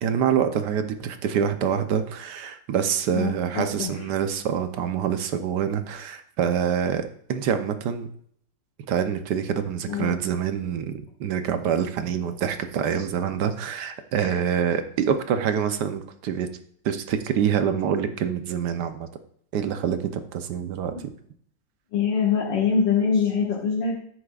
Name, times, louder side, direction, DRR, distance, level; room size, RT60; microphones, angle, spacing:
voice 1, 0.0-8.1 8.9-16.5 16.8-19.1 19.5-21.1, right 8 dB, 75° right, 8 dB, 1.3 m, -26 dB
voice 2, 3.1-3.9 9.9-10.1 14.2-14.3 21.9-24.0, left 6 dB, 90° left, -5 dB, 2.2 m, -24 dB
9.9 x 9.8 x 2.4 m, 0.63 s
omnidirectional pair, 1.9 m